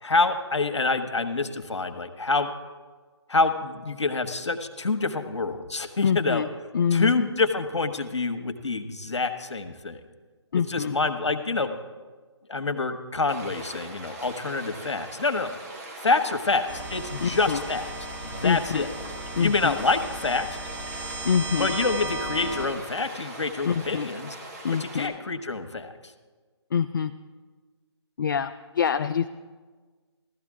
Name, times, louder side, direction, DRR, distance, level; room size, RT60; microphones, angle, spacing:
voice 1, 0.0-2.5 3.3-6.4 6.9-10.0 10.5-11.7 12.5-15.5 16.0-17.9 18.2-18.9 19.3-20.6 21.6-24.3 24.8-25.9, left 3 dB, 80° left, 8 dB, 1.2 m, -27 dB
voice 2, 6.0-6.5 6.7-7.1 10.5-11.0 17.2-17.6 18.4-18.9 19.4-19.8 21.2-21.7 23.6-24.1 24.6-25.1 26.7-27.1 28.2-29.3, left 7 dB, 45° left, 9 dB, 0.3 m, -25 dB
Stream, 13.3-25.1, right 2 dB, 35° right, 2.1 m, -42 dB
sound 1, 16.7-22.7, right 1 dB, 10° right, 1.8 m, -36 dB
16.0 x 13.0 x 3.7 m, 1.4 s
figure-of-eight pair, 150°, 15 cm